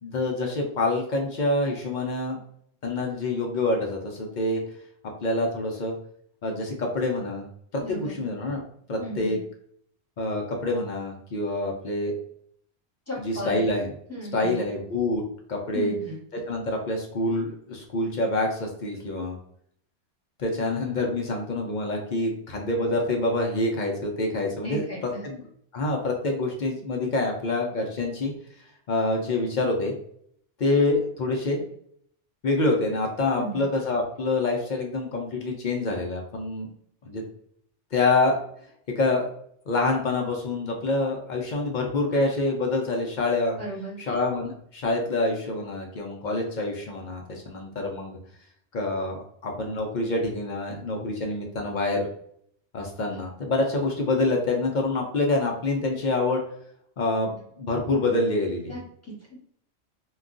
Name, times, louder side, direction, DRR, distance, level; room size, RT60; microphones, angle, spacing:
voice 1, 0.0-2.4 2.8-4.6 5.2-5.9 6.4-7.5 7.7-8.6 8.9-9.4 10.2-12.1 13.2-13.9 14.3-15.2 15.5-15.9 16.5-19.4 20.4-24.8 25.2-25.4 25.7-28.3 28.9-29.9 30.6-31.6 32.4-36.7 37.1-37.2 37.9-38.4 39.0-39.3 39.7-43.6 44.1-48.2 48.7-52.1 52.7-56.4 57.0-58.7, left 2 dB, 55° left, 1 dB, 0.6 m, -26 dB
voice 2, 7.8-8.2 9.0-9.4 13.1-13.7 14.1-14.6 15.7-16.1 24.6-25.2 33.3-33.6 43.6-44.0 58.7-59.4, right 1 dB, 15° left, -6 dB, 1.0 m, -35 dB
2.3 x 2.2 x 3.7 m, 0.65 s
omnidirectional pair, 1.2 m